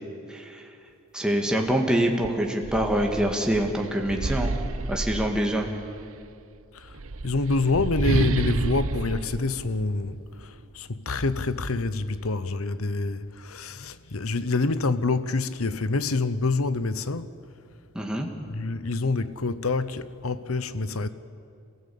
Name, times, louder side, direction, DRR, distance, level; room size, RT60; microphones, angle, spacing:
voice 1, 0.3-0.7 1.1-4.6 4.9-5.7 17.9-18.3, right 1 dB, 5° right, 1.9 m, -25 dB
sound 1, 1.7-1.8 2.2-5.9 6.8-10.4, right 2 dB, 70° right, 0.9 m, -30 dB
voice 2, 7.2-17.3 18.5-21.1, left 3 dB, 85° left, 1.0 m, -27 dB
27.5 x 16.0 x 8.6 m
head